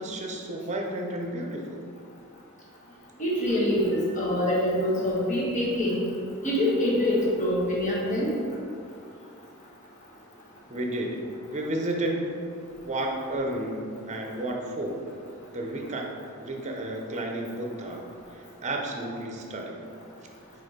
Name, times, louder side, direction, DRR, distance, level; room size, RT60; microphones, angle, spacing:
voice 1, 0.0-1.8 10.7-12.4 12.8-15.0 15.5-16.1 16.4-18.1 18.6-19.8, right 1 dB, 35° right, 1 dB, 0.7 m, -32 dB
voice 2, 3.2-6.0 6.4-8.3, left 1 dB, 35° left, -6 dB, 1.4 m, -25 dB
4.8 x 4.3 x 5.0 m, 2.4 s
head